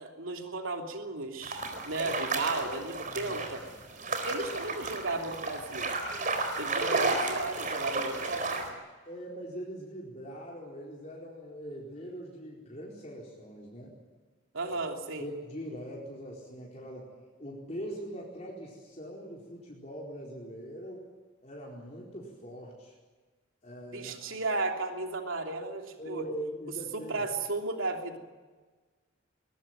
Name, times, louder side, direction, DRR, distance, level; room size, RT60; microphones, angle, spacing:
voice 1, 0.0-3.6 4.2-5.9 6.6-8.7 14.5-15.2 23.9-26.2 26.9-28.2, right 2 dB, 85° right, 3 dB, 3.0 m, -34 dB
sound 1, 1.4-8.7, right 3 dB, 40° right, 4.2 m, -33 dB
voice 2, 3.1-3.7 9.0-13.9 14.6-14.8 15.2-17.1 17.4-21.1 21.4-23.0 23.6-24.4 26.0-27.2, equal, 35° left, -3 dB, 4.4 m, -42 dB
22.0 x 20.5 x 9.2 m, 1.3 s
head